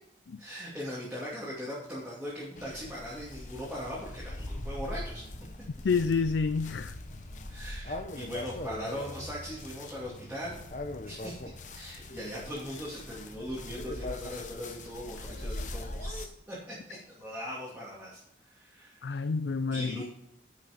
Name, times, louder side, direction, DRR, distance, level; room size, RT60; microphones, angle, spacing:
voice 1, 0.4-5.2 7.5-10.6 11.0-11.3 11.7-19.2 19.7-20.0, equal, 10° right, 2.7 m, -40 dB
sound 1, 2.5-16.3, left 1 dB, 45° left, 1.0 m, -41 dB
voice 2, 5.8-6.9 19.0-20.0, left 5 dB, 75° left, 0.4 m, -28 dB
10.5 x 6.4 x 5.2 m
head